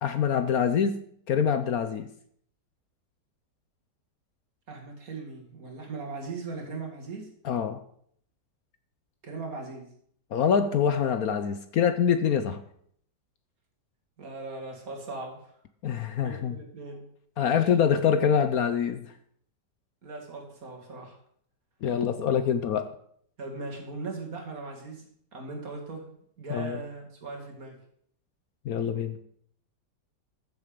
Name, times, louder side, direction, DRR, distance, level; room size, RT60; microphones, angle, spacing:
voice 1, 0.0-1.0 1.3-2.1 7.4-7.8 10.3-12.6 15.8-16.6 17.4-19.0 21.8-22.9 26.5-26.8 28.6-29.2, left 7 dB, 65° left, 10 dB, 1.1 m, -25 dB
voice 2, 4.7-7.3 9.2-9.9 14.2-15.5 16.2-17.0 17.4-17.7 20.0-21.2 23.4-27.8, right 3 dB, 55° right, 1 dB, 2.5 m, -39 dB
13.5 x 7.2 x 5.1 m, 0.66 s
omnidirectional pair, 1.9 m